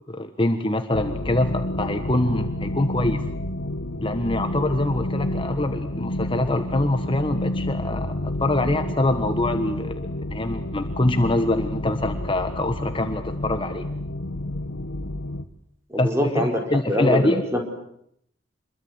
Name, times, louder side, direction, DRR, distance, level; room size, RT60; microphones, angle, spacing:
voice 1, 0.1-3.2 4.0-10.0 10.3-13.9 16.0-17.4, left 1 dB, 25° left, 7 dB, 1.4 m, -24 dB
sound 1, 0.9-15.4, left 1 dB, 80° left, 1.3 m, -30 dB
voice 2, 15.9-16.6 16.9-17.6, left 1 dB, 15° right, 3 dB, 4.9 m, -23 dB
27.0 x 22.5 x 8.2 m, 0.72 s
head